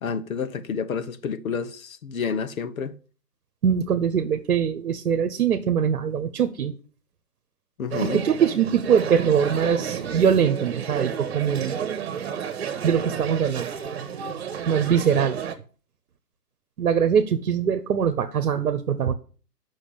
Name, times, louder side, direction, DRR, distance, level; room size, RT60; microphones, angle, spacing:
voice 1, 0.0-3.0 7.8-8.2, left 6 dB, 60° left, 1.1 m, -29 dB
voice 2, 3.6-6.7 8.0-12.1 12.8-13.7 14.7-15.4 16.8-19.1, right 7 dB, 65° right, 1.1 m, -22 dB
sound 1, 7.9-15.6, right 7 dB, 40° right, 1.5 m, -31 dB
8.5 x 6.2 x 7.0 m
hypercardioid pair, 155°, 47 cm